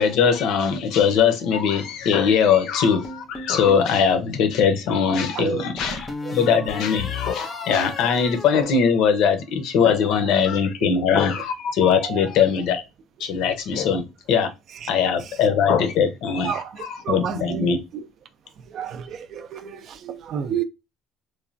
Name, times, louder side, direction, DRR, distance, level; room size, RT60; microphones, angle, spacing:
voice 1, 0.0-12.8 13.2-14.5 14.9-16.5 17.1-17.8, left 7 dB, 70° left, 0.6 m, -21 dB
sound 1, 3.0-3.9 5.8-9.4, left 3 dB, 15° left, 0.5 m, -35 dB
voice 2, 5.3-6.4 10.2-10.3 10.8-10.9 12.0-12.3 13.7-13.8 14.7-14.9 15.2-15.4 16.4-18.1 18.7-20.6, right 8 dB, 50° right, 0.3 m, -31 dB
3.2 x 2.1 x 2.5 m
cardioid pair, 125°, 0 cm